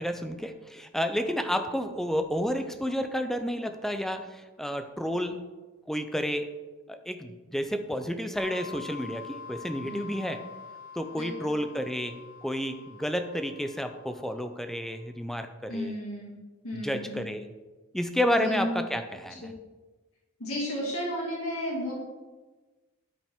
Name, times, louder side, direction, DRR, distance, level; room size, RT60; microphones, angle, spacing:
voice 1, 0.0-5.4 5.9-6.5 6.9-10.4 11.0-12.2 12.4-16.0 16.7-17.5 17.9-19.5, equal, ahead, 7 dB, 0.5 m, -31 dB
sound 1, 8.4-14.9, left 5 dB, 25° right, 3.0 m, -46 dB
voice 2, 11.1-11.5 15.7-16.3 16.6-17.2 18.4-18.8 19.4-19.5 20.4-21.9, equal, 80° left, -4 dB, 2.4 m, -33 dB
12.0 x 5.1 x 3.6 m, 1.2 s
head